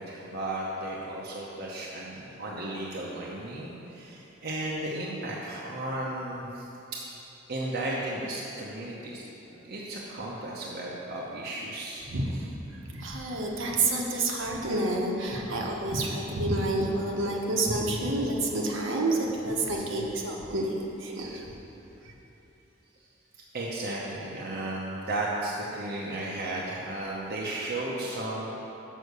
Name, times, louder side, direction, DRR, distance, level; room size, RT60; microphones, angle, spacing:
voice 1, 0.0-6.7 7.5-12.1 23.5-28.6, right 1 dB, 55° right, -5 dB, 0.8 m, -34 dB
voice 2, 12.1-12.5 12.9-20.7 21.0-21.5 22.0-22.1, right 2 dB, 75° right, -1 dB, 1.1 m, -29 dB
6.4 x 6.0 x 6.7 m, 3.0 s
head